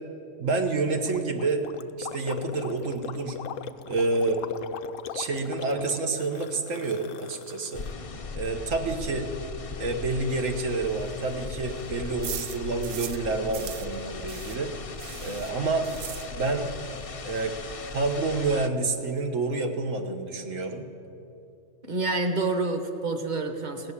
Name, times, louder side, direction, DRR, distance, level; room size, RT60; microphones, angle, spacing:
voice 1, 0.4-1.6 2.0-3.4 3.9-4.4 5.1-7.8 8.3-9.3 9.8-14.7 15.2-15.9 16.3-16.7 17.2-17.5 17.9-20.8, right 3 dB, 80° right, 4 dB, 1.5 m, -28 dB
Gurgling, 1.0-7.9, left 8 dB, 85° left, 1.0 m, -40 dB
sound 1, 7.7-18.7, left 4 dB, 45° left, 0.4 m, -39 dB
sound 2, 10.4-13.3 13.5-16.7 17.0-17.1 17.4-17.5 17.7-18.2, right 10 dB, 65° right, 0.7 m, -41 dB
voice 2, 21.8-23.9, right 3 dB, 40° right, 7 dB, 1.1 m, -28 dB
17.0 x 6.9 x 9.8 m, 2.7 s
omnidirectional pair, 1.3 m